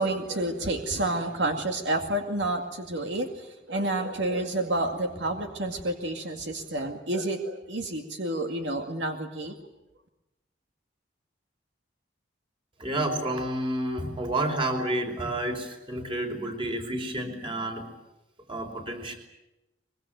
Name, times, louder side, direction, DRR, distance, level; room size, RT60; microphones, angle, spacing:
voice 1, 0.0-9.6, right 2 dB, 70° right, 4 dB, 2.2 m, -29 dB
voice 2, 12.8-17.9 18.5-19.2, right 1 dB, 30° right, 4 dB, 4.6 m, -30 dB
24.0 x 22.5 x 9.2 m, 0.98 s
head